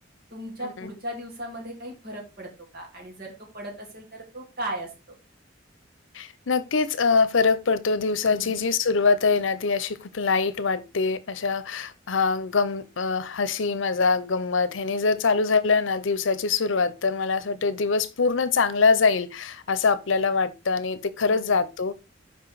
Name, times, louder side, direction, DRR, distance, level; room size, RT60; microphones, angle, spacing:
voice 1, 0.3-5.1 8.3-8.6 21.3-21.6, right 1 dB, 50° right, 3.0 m, -37 dB
voice 2, 6.1-21.9, left 4 dB, 85° left, 0.7 m, -24 dB
6.1 x 5.2 x 4.7 m
head